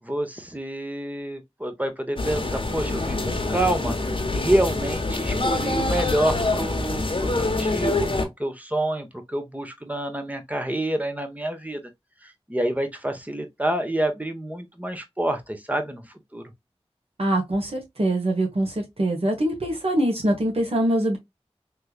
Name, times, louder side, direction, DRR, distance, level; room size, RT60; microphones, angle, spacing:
voice 1, 0.0-3.9 4.3-11.8 12.2-16.0 16.3-16.4, right 1 dB, 15° right, 1.0 m, -28 dB
sound 1, 2.2-8.2, left 2 dB, 55° left, 1.0 m, -25 dB
voice 2, 17.2-21.2, right 1 dB, 65° right, 1.5 m, -23 dB
3.4 x 3.1 x 2.3 m
wide cardioid pair, 45°, 11 cm